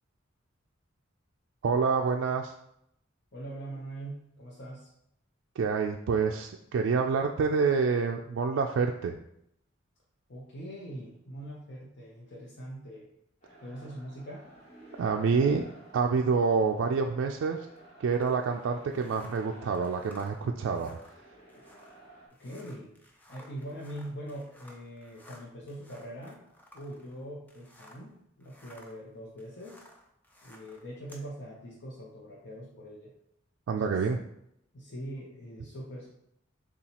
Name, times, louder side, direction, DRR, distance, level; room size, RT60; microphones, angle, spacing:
voice 1, 1.6-2.6 5.5-9.2 14.9-15.6 15.9-17.7 18.0-21.4 33.7-34.2, right 5 dB, 75° right, 2 dB, 0.3 m, -27 dB
voice 2, 3.3-4.9 10.3-13.0 13.6-14.5 22.4-26.4 26.7-29.8 30.4-33.1 33.8-33.9 34.7-36.1, right 1 dB, 60° left, -5 dB, 0.8 m, -42 dB
sound 1, 13.4-22.3, right 1 dB, 35° left, 1.2 m, -54 dB
sound 2, 18.1-28.1 28.4-31.3, left 1 dB, 10° left, 0.5 m, -56 dB
6.8 x 2.4 x 2.9 m, 0.77 s
head